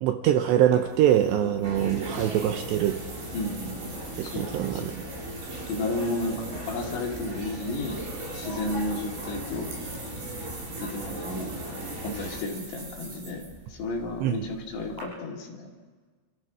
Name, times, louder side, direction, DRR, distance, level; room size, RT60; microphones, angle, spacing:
voice 1, 0.0-3.0 4.2-5.0 14.2-14.3, right 11 dB, 80° right, 6 dB, 2.6 m, -24 dB
sound 1, 0.7-15.0, right 3 dB, 55° right, 7.9 m, -44 dB
sound 2, 1.6-12.4, right 1 dB, 20° right, 2.7 m, -38 dB
voice 2, 3.3-4.9 5.7-8.0 8.3-9.7 10.8-11.6 12.0-13.4 13.7-15.7, left 2 dB, 60° left, 0 dB, 4.5 m, -33 dB
29.0 x 14.5 x 6.2 m, 1.4 s
omnidirectional pair, 5.7 m